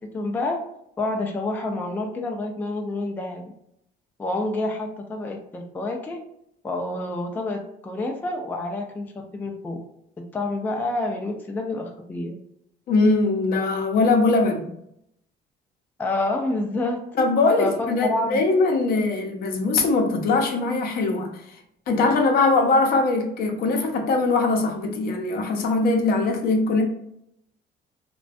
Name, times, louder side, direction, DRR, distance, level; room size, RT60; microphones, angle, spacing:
voice 1, 0.1-0.6 1.0-3.5 4.2-6.2 6.6-9.8 10.3-12.4 16.0-17.0 17.6-18.4, left 2 dB, 10° left, 2 dB, 0.3 m, -28 dB
voice 2, 12.9-14.7 17.2-21.3 21.9-26.8, left 3 dB, 60° left, 3 dB, 0.6 m, -21 dB
2.5 x 2.1 x 2.4 m, 0.75 s
cardioid pair, 110°, 17 cm